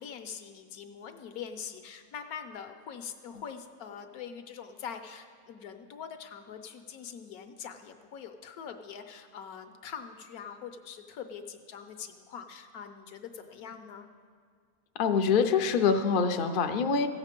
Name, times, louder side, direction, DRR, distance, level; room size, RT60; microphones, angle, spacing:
voice 1, 0.0-14.1, left 7 dB, 75° left, 7 dB, 1.2 m, -43 dB
voice 2, 15.0-17.1, left 6 dB, 55° left, 6 dB, 0.5 m, -25 dB
15.5 x 7.3 x 5.2 m, 2.1 s
omnidirectional pair, 1.6 m